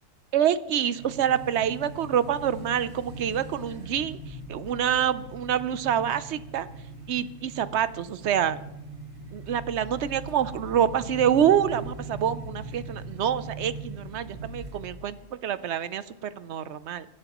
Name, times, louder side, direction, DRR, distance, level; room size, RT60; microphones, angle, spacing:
voice 1, 0.3-6.7 7.1-8.6 9.3-15.2 15.4-17.1, right 9 dB, 60° right, 14 dB, 0.7 m, -26 dB
sound 1, 0.9-15.2, right 2 dB, 45° right, 2.0 m, -40 dB
23.5 x 11.0 x 3.0 m, 0.94 s
omnidirectional pair, 1.6 m